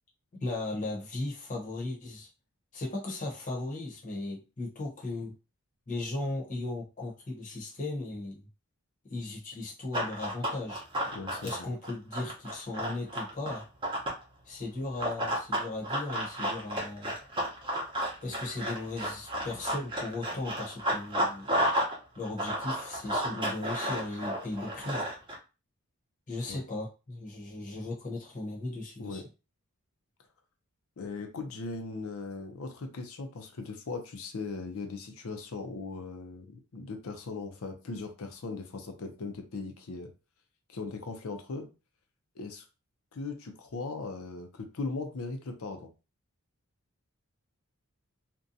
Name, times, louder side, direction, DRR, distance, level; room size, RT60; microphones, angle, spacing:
voice 1, 0.4-2.3 2.7-5.3 5.9-8.5 9.0-10.9 11.4-13.6 14.4-17.1 18.2-21.6 22.2-25.1 26.3-29.2, left 2 dB, 35° left, 0.8 m, -37 dB
Run, 9.9-14.2 15.0-21.9 22.2-25.3, equal, 20° right, 0.7 m, -32 dB
voice 2, 11.1-11.7 26.5-26.6 29.0-29.3 31.0-40.1 40.7-41.7 42.4-42.6 43.1-45.9, left 3 dB, 70° left, 0.5 m, -39 dB
2.6 x 2.2 x 2.6 m
head